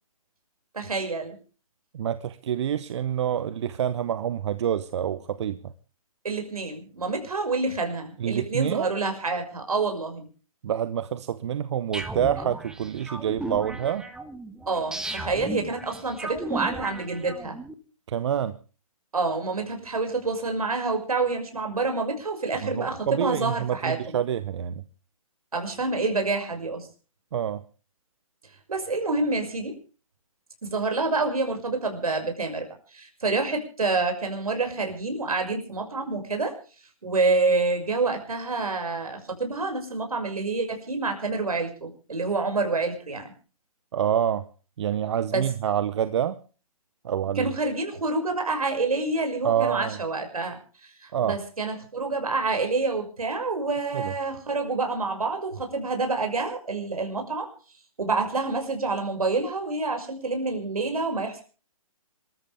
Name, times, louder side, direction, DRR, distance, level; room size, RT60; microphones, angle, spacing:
voice 1, 0.7-1.4 6.2-10.3 14.7-17.6 19.1-24.2 25.5-26.9 28.7-29.8 30.6-36.5 37.0-43.3 45.3-45.4 47.4-57.5 58.0-61.4, right 3 dB, 75° right, 4 dB, 6.0 m, -27 dB
voice 2, 1.9-5.7 8.2-8.9 10.6-14.1 18.1-18.6 22.6-24.8 27.3-27.6 43.9-44.4 44.8-46.4 47.0-47.5 49.4-50.0 51.1-51.4 53.9-54.1, right 9 dB, 50° right, 14 dB, 0.9 m, -27 dB
sound 1, 11.9-17.7, right 2 dB, 5° right, 1.3 m, -36 dB
27.5 x 13.5 x 3.5 m, 0.37 s
figure-of-eight pair, 135°, 19 cm